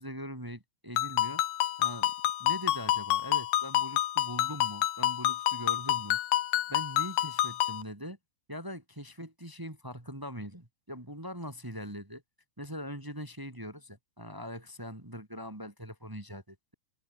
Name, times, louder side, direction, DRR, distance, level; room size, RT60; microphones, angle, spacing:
voice 1, 0.0-1.4 1.8-2.1 2.4-6.2 6.7-8.2 8.5-12.2 12.6-16.7, equal, 15° right, 0.8 m, -41 dB
Ringtone, 1.0-7.8, left 14 dB, 75° left, 2.0 m, -29 dB
omnidirectional pair, 5.6 m